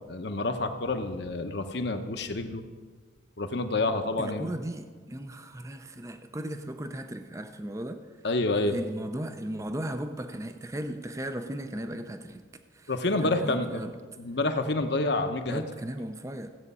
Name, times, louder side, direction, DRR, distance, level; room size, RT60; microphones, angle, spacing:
voice 1, 0.1-2.6 3.4-4.5 8.2-8.8 12.9-13.8 14.2-15.6, left 2 dB, 55° left, 7 dB, 0.9 m, -28 dB
voice 2, 4.2-8.1 8.7-12.5 12.7-12.9 13.2-14.0 15.5-16.5, right 1 dB, 15° right, 8 dB, 0.5 m, -36 dB
15.5 x 8.3 x 5.5 m, 1.5 s
head